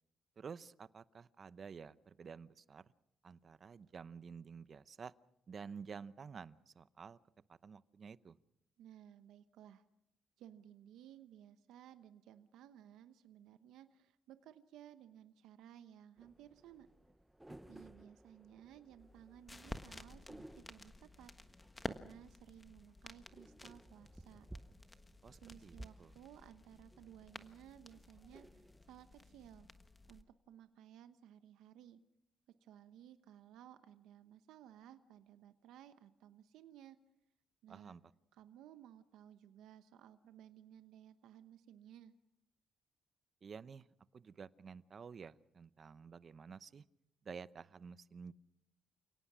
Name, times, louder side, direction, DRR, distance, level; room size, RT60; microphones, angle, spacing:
voice 1, 0.4-2.8 3.2-5.1 5.5-7.2 7.5-8.4 25.2-26.1 37.7-38.0 43.4-43.9 44.1-46.8 47.2-48.3, right 6 dB, 45° right, 16 dB, 0.8 m, -51 dB
voice 2, 8.8-9.8 10.4-16.9 17.5-24.5 25.3-29.7 30.1-32.0 32.6-37.0 37.6-38.0 38.3-42.1, right 10 dB, 85° right, 10 dB, 1.0 m, -58 dB
sound 1, 16.2-29.1, right 1 dB, 5° right, 0.9 m, -59 dB
sound 2, 19.0-30.2, left 2 dB, 15° left, 1.4 m, -52 dB
29.5 x 18.0 x 6.2 m, 0.79 s
cardioid pair, 90°, 0 cm